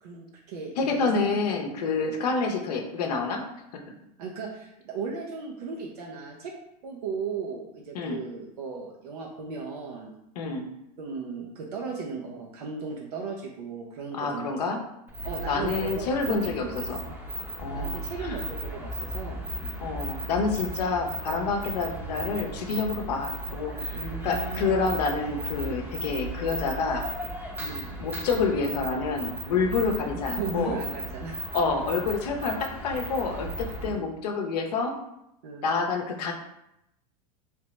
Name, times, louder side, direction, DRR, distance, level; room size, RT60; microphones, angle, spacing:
voice 1, 0.0-1.2 2.1-2.2 4.2-6.5 6.8-10.1 11.0-14.5 15.2-16.9 17.7-19.8 23.0-23.2 23.9-24.7 27.6-27.9 30.4-31.4 33.4-34.0 35.4-35.7, right 5 dB, 70° right, -1 dB, 0.7 m, -36 dB
voice 2, 0.8-3.4 3.7-3.8 7.9-8.2 10.4-10.7 14.1-14.8 15.5-17.0 17.6-18.4 19.8-24.0 24.2-27.1 28.0-30.8 31.5-34.9 35.6-36.3, left 4 dB, 75° left, 2 dB, 0.7 m, -28 dB
sound 1, 15.1-34.0, right 1 dB, 10° right, 0.7 m, -36 dB
3.3 x 2.9 x 3.2 m, 0.82 s
hypercardioid pair, 105°, 20 cm